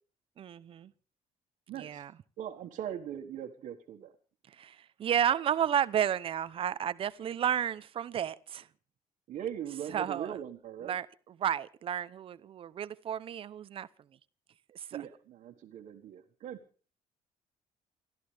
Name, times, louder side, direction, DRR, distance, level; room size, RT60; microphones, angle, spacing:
voice 1, 0.4-0.9 1.7-2.1 4.6-8.7 9.9-10.4 10.8-13.9 14.7-15.1, right 9 dB, 40° right, 16 dB, 0.8 m, -32 dB
voice 2, 1.7-2.0 2.4-4.1 9.3-11.0 14.9-16.6, right 10 dB, 65° right, 0 dB, 1.7 m, -40 dB
29.5 x 13.5 x 3.5 m, 0.39 s
cardioid pair, 165°, 14 cm